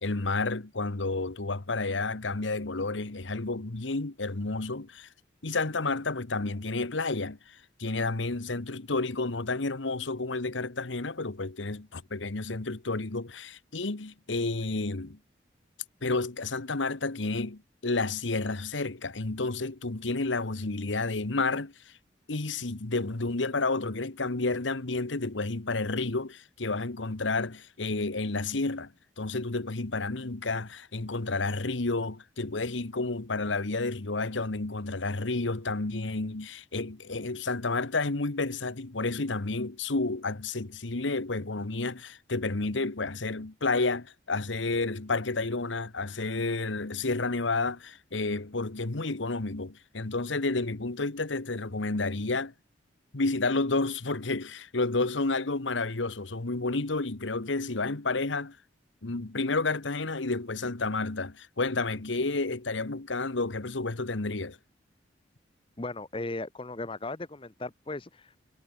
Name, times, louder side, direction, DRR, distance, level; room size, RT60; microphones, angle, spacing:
voice 1, 0.0-5.1 5.4-15.2 16.0-21.9 22.3-28.9 29.2-52.5 53.1-58.6 59.0-64.6, left 3 dB, 80° left, 1.4 m, -31 dB
voice 2, 65.8-68.4, left 2 dB, 30° left, 0.9 m, -37 dB
head